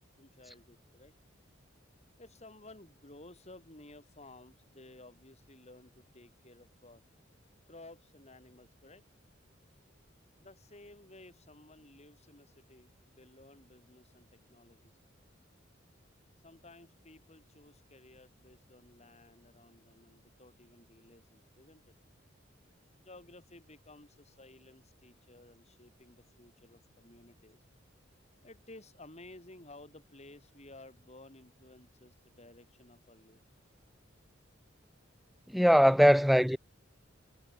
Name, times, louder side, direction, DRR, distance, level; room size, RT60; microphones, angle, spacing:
voice 1, 0.2-1.2 2.2-7.0 7.7-9.0 10.4-14.9 16.4-21.9 23.0-27.6 28.4-33.4, left 2 dB, 35° left, 6.0 m, -55 dB
voice 2, 35.5-36.6, equal, ahead, 0.3 m, -21 dB
head